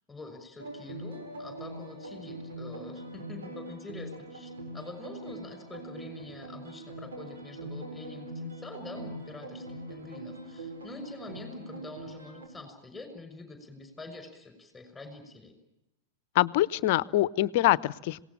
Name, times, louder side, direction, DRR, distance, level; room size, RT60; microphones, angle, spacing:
voice 1, 0.1-15.5, left 3 dB, 10° left, 9 dB, 6.2 m, -46 dB
sound 1, 0.6-12.5, right 1 dB, 75° right, 6.9 m, -42 dB
voice 2, 16.3-18.2, left 15 dB, 50° left, 20 dB, 0.8 m, -24 dB
26.5 x 18.5 x 8.8 m, 0.88 s
figure-of-eight pair, 95°, 0 cm